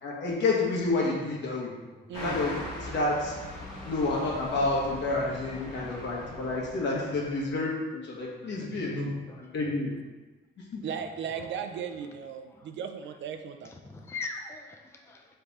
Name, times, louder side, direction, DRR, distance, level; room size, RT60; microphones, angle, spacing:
voice 1, 0.0-1.7 2.2-3.3 3.8-9.9 10.7-10.8, left 2 dB, 65° left, -3 dB, 1.3 m, -29 dB
voice 2, 1.6-2.1 5.5-6.6 7.4-7.5 8.5-10.0 11.2-11.5 12.5-12.8 13.6-15.4, left 3 dB, 15° left, 2 dB, 0.4 m, -44 dB
sound 1, 2.1-7.6, left 1 dB, 90° left, 1.3 m, -41 dB
voice 3, 10.8-13.7, right 7 dB, 70° right, 7 dB, 0.4 m, -36 dB
4.0 x 3.3 x 3.5 m, 1.2 s
cardioid pair, 90°, 20 cm